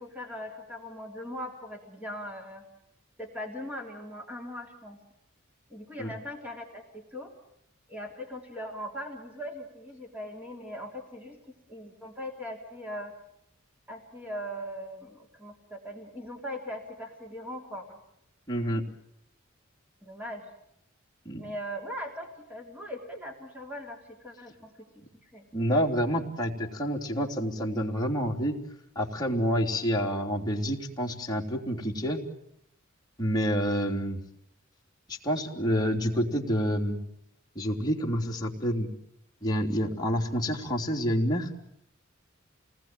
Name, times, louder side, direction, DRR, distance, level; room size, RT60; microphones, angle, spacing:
voice 1, 0.0-2.6 3.2-5.0 5.7-7.3 7.9-11.4 11.7-13.1 13.9-18.0 20.0-20.4 21.4-24.7 25.2-25.5, equal, 10° right, 1 dB, 3.3 m, -40 dB
voice 2, 18.5-18.8 21.2-21.4 25.5-28.5 28.9-32.2 33.2-34.2 35.1-37.0 37.5-38.9 39.4-41.5, equal, 20° left, -1 dB, 3.4 m, -28 dB
29.5 x 20.0 x 9.2 m, 0.77 s
head